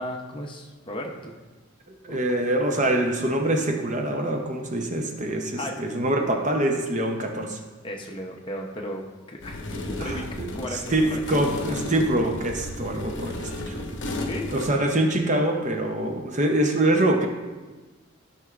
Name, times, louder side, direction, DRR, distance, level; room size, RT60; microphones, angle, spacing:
voice 1, 0.0-1.3 2.1-2.2 5.6-5.7 7.8-9.0 9.3-11.5 14.2-14.5, equal, 25° left, 1 dB, 0.7 m, -35 dB
voice 2, 1.9-7.6 10.0-13.8 14.5-17.3, right 1 dB, 35° right, 3 dB, 0.6 m, -25 dB
sound 1, 9.4-14.7, left 1 dB, 55° left, 0.8 m, -33 dB
12.5 x 5.9 x 2.4 m, 1.2 s
head